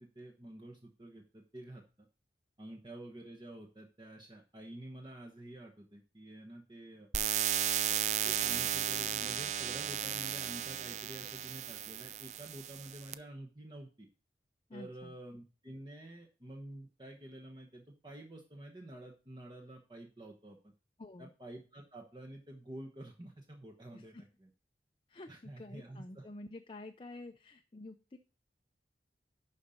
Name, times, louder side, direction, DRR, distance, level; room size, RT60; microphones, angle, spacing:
voice 1, 0.0-2.1 2.6-7.1 7.9-8.0 8.2-14.1 14.7-20.7 21.2-24.5 25.3-26.3, right 1 dB, 25° right, 0 dB, 1.0 m, -49 dB
sound 1, 7.1-13.1, right 10 dB, 40° right, 0.4 m, -34 dB
Bowed string instrument, 8.4-13.4, left 3 dB, 55° right, 3.2 m, -67 dB
voice 2, 14.7-15.1 21.0-21.3 23.9-24.2 25.1-28.2, left 2 dB, 30° left, 6 dB, 0.5 m, -49 dB
11.0 x 4.1 x 5.0 m, 0.35 s
head